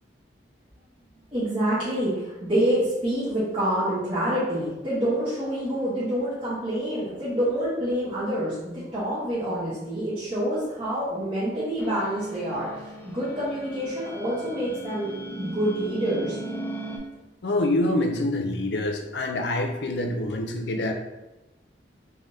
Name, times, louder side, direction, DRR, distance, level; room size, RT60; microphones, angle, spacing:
voice 1, 1.3-16.4, right 1 dB, 30° right, -11 dB, 1.0 m, -27 dB
sound 1, 11.8-17.0, right 2 dB, 10° left, 0.4 m, -37 dB
voice 2, 17.4-20.9, left 1 dB, 70° left, 4 dB, 0.5 m, -26 dB
3.5 x 3.3 x 2.7 m, 1.0 s
head